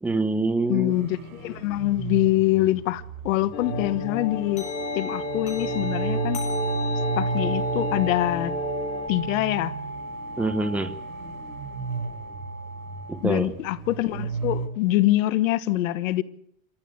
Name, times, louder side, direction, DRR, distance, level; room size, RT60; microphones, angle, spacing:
voice 1, 0.0-1.0 10.4-11.0 13.1-13.5, right 2 dB, 5° right, 0.9 m, -25 dB
voice 2, 0.7-4.6 4.9-6.4 7.2-8.5 9.1-9.8 13.2-16.2, left 16 dB, 65° left, 1.4 m, -24 dB
sound 1, 0.9-14.7, right 4 dB, 80° right, 6.3 m, -34 dB
sound 2, 3.5-9.1, left 2 dB, 90° left, 2.6 m, -32 dB
sound 3, 4.6-13.1, equal, 15° left, 7.7 m, -35 dB
26.0 x 14.5 x 7.7 m
supercardioid pair, 160°, 42 cm